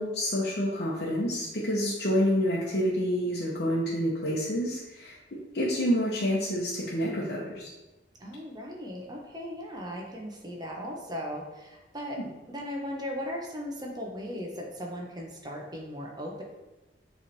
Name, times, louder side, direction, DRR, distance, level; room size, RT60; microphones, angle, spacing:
voice 1, 0.0-5.1 5.5-7.7, equal, 60° left, -7 dB, 1.0 m, -28 dB
voice 2, 8.2-12.2 12.5-16.4, equal, 25° right, -1 dB, 1.0 m, -37 dB
7.2 x 3.4 x 4.2 m, 1.1 s
head